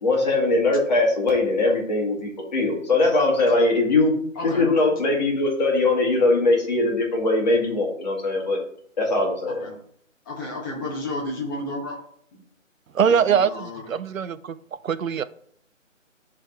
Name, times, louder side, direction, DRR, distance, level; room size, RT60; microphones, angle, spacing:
voice 1, 0.0-4.1 4.4-8.6 9.0-9.7, left 2 dB, 35° left, -1 dB, 1.8 m, -21 dB
voice 2, 4.3-4.9 9.5-9.8 10.2-12.0 13.1-13.9, left 2 dB, 15° left, -2 dB, 1.1 m, -32 dB
voice 3, 12.9-14.6 14.8-15.2, right 7 dB, 80° right, 14 dB, 0.6 m, -22 dB
9.0 x 3.6 x 4.5 m, 0.64 s
figure-of-eight pair, 155°, 39 cm